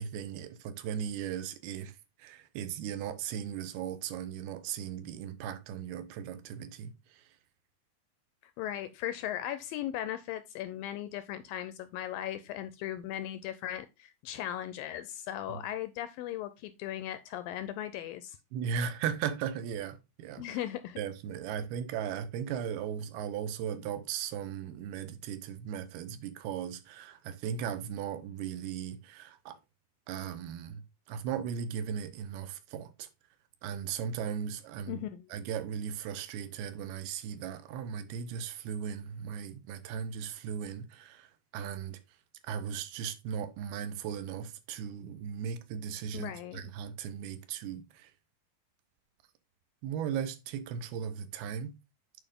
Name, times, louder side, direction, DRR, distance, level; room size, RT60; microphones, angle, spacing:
voice 1, 0.0-7.2 15.5-15.6 18.5-20.6 21.0-29.6 30.1-30.8 31.1-33.1 33.6-35.0 35.3-42.0 42.4-48.1 49.8-51.7, right 8 dB, 85° right, 2.8 m, -37 dB
voice 2, 8.6-18.4 20.4-21.0 34.9-35.3 46.1-46.6, left 12 dB, 80° left, 2.1 m, -37 dB
9.0 x 4.5 x 3.6 m
omnidirectional pair, 4.4 m